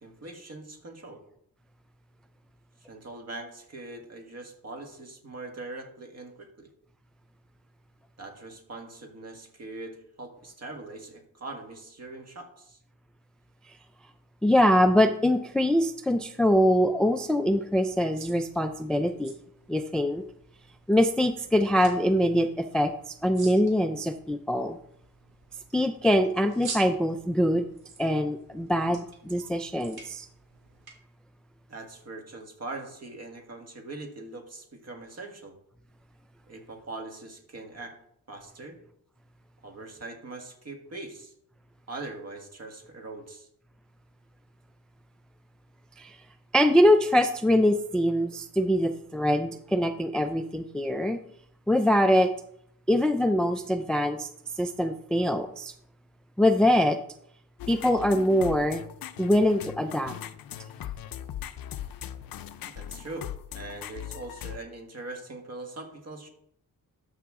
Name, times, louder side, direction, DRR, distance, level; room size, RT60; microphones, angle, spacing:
voice 1, 0.0-1.2 2.8-6.7 8.2-12.8 31.7-35.6 36.5-38.0 38.3-38.8 39.6-41.3 41.9-43.5 62.6-63.3 63.5-66.3, right 2 dB, 45° right, 3 dB, 1.8 m, -42 dB
voice 2, 14.4-19.3 19.7-20.2 20.9-24.8 25.7-27.7 28.0-30.3 46.0-46.2 46.5-51.2 51.7-52.3 52.9-54.3 54.6-55.7 56.4-57.0 57.7-58.8 59.2-60.1, equal, ahead, 8 dB, 0.4 m, -23 dB
sound 1, 17.6-30.9, right 5 dB, 85° right, 2.0 m, -48 dB
sound 2, 57.6-64.6, left 11 dB, 70° left, 0.6 m, -39 dB
13.0 x 5.7 x 3.7 m, 0.71 s
wide cardioid pair, 130°, 36 cm